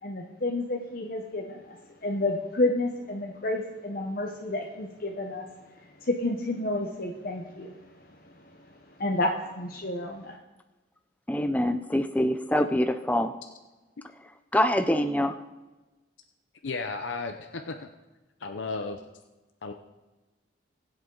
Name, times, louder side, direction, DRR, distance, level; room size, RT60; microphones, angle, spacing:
voice 1, 0.0-5.5 5.8-7.8 8.2-8.3 9.0-10.4, left 2 dB, 50° left, 1 dB, 1.0 m, -30 dB
voice 2, 11.3-13.3 14.5-15.4, left 1 dB, 10° left, 9 dB, 0.5 m, -25 dB
voice 3, 16.6-17.9 18.4-19.0 19.6-19.7, left 3 dB, 85° left, 6 dB, 0.7 m, -34 dB
21.5 x 8.0 x 3.9 m, 1.1 s
head